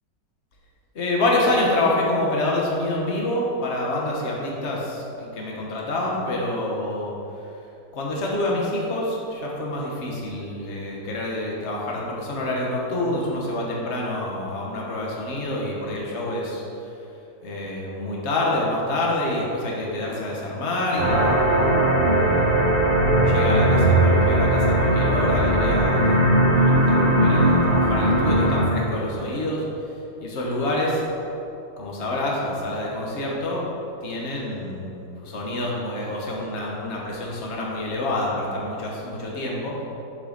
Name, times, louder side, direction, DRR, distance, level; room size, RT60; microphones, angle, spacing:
voice 1, 0.9-7.1 7.9-16.9 17.4-22.6 23.3-26.2 26.4-29.6 30.2-31.0 31.8-33.6 34.0-39.7, left 1 dB, 40° left, -3 dB, 1.3 m, -27 dB
sound 1, 21.0-28.6, right 1 dB, 50° right, 1.7 m, -19 dB
7.2 x 6.2 x 4.0 m, 2.8 s
omnidirectional pair, 2.0 m